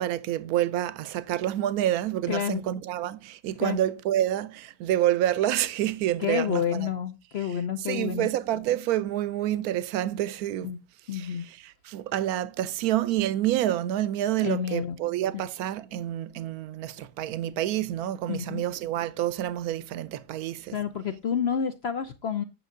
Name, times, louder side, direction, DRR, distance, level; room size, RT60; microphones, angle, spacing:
voice 1, 0.0-6.9 7.8-10.7 11.1-20.8, right 12 dB, 75° right, 1.1 m, -28 dB
voice 2, 2.3-2.6 3.6-3.8 6.2-8.3 10.6-10.8 11.1-11.5 14.4-14.9 18.3-18.6 20.7-22.4, left 8 dB, 60° left, 0.7 m, -29 dB
9.1 x 6.2 x 3.6 m
omnidirectional pair, 1.7 m